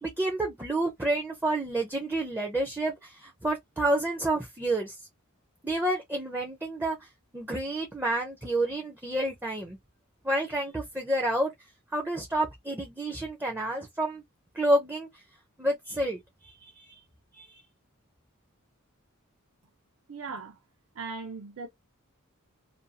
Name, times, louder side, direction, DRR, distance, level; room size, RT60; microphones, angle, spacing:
voice 1, 0.0-5.0 5.6-7.1 7.3-9.8 10.2-11.5 11.9-14.2 14.5-15.1 15.6-17.0 17.3-17.6, right 1 dB, 10° right, 0.5 m, -29 dB
voice 2, 20.1-20.6 20.9-21.7, right 4 dB, 75° right, 0.5 m, -38 dB
2.6 x 2.3 x 2.6 m
head